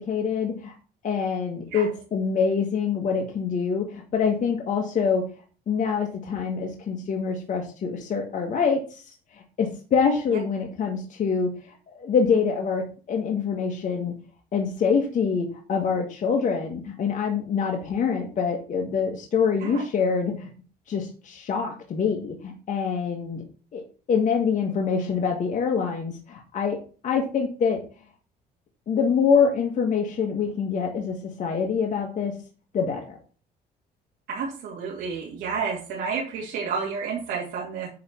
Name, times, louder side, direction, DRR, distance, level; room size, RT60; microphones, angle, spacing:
voice 1, 0.1-0.7 1.0-5.2 5.7-8.8 9.6-11.5 11.9-14.1 14.5-20.5 20.9-23.4 23.7-23.8 24.1-26.8 27.0-27.8 28.9-32.3 32.7-33.0, left 6 dB, 50° left, 1 dB, 1.6 m, -25 dB
voice 2, 34.3-37.9, right 5 dB, 80° right, -5 dB, 2.7 m, -30 dB
9.3 x 3.4 x 6.1 m, 0.38 s
cardioid pair, 110°, 17 cm